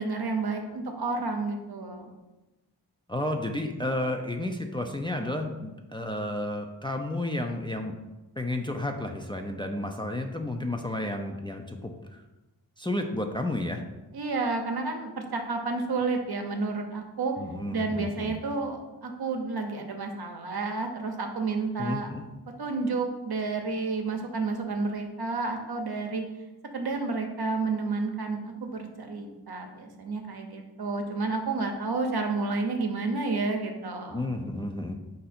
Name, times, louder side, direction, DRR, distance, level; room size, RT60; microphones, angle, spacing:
voice 1, 0.0-2.1 14.1-17.3 17.7-22.1 22.6-26.2 26.7-34.3, right 3 dB, 60° right, 3 dB, 0.8 m, -30 dB
voice 2, 3.1-7.9 8.4-12.2 12.8-13.8 17.4-18.3 21.8-22.2 34.1-34.9, left 1 dB, 10° left, 3 dB, 0.4 m, -32 dB
4.7 x 2.6 x 4.2 m, 1.1 s
cardioid pair, 40°, 42 cm